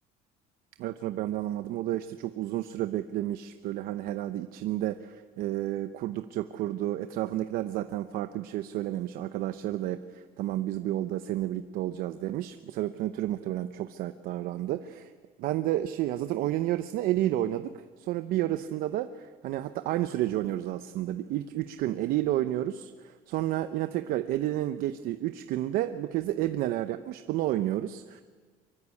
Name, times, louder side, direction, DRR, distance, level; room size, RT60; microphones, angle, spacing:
voice 1, 0.8-15.1 15.4-28.2, right 14 dB, 65° right, 10 dB, 0.9 m, -31 dB
24.0 x 23.5 x 8.5 m, 1.5 s
cardioid pair, 150°, 16 cm